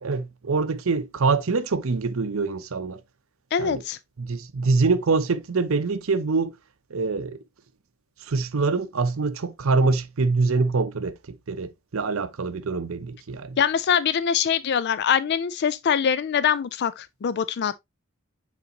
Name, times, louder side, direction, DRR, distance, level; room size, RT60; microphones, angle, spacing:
voice 1, 0.0-3.0 3.6-3.8 4.2-6.5 6.9-7.4 8.3-11.2 11.5-13.6, right 4 dB, 70° right, 0.6 m, -24 dB
voice 2, 3.5-4.0 13.6-17.7, left 7 dB, 50° left, 0.4 m, -23 dB
8.2 x 4.0 x 2.8 m
head